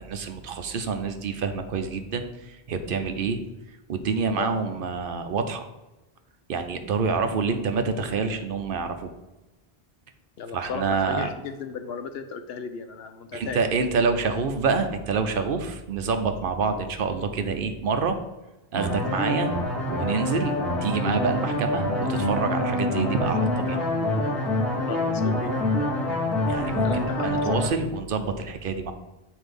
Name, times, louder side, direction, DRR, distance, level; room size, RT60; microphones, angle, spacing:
voice 1, 0.0-3.4 3.9-5.6 6.5-9.1 10.5-11.3 13.3-18.2 18.7-19.5 19.9-20.5 20.8-23.8 26.5-28.9, right 5 dB, 65° right, 7 dB, 0.8 m, -27 dB
voice 2, 10.4-13.6 24.9-25.5 26.8-27.3, left 5 dB, 80° left, 8 dB, 0.9 m, -35 dB
sound 1, 18.7-27.7, left 1 dB, ahead, 1.1 m, -26 dB
7.9 x 2.7 x 5.2 m, 1.0 s
omnidirectional pair, 1.0 m